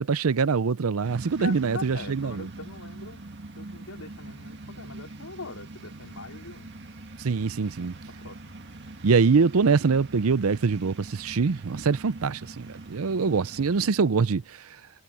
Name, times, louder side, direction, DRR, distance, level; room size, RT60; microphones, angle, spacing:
voice 1, 0.0-2.5 7.2-7.9 9.0-14.6, right 5 dB, 75° right, 0.6 m, -24 dB
sound 1, 1.0-13.9, right 2 dB, 55° right, 1.8 m, -43 dB
voice 2, 1.4-3.2 3.6-6.8 8.2-8.4 13.0-13.4, left 3 dB, 80° left, 3.7 m, -42 dB
head